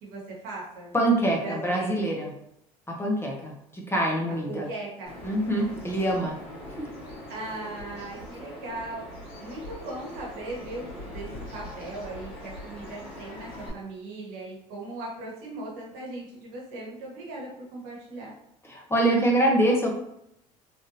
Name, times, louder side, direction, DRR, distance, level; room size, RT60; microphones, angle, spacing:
voice 1, 0.0-0.9 1.4-2.1 4.5-5.2 7.3-9.1 9.4-18.3, right 2 dB, 70° right, -3 dB, 1.2 m, -38 dB
voice 2, 0.9-2.3 2.9-4.7 5.2-6.4 6.8-6.9 18.6-19.9, right 1 dB, 15° left, -1 dB, 0.9 m, -25 dB
Bird vocalization bird call bird song, 5.1-13.7, left 1 dB, 65° left, 1.5 m, -42 dB
3.2 x 2.6 x 2.7 m, 0.78 s
hypercardioid pair, 65°, 17 cm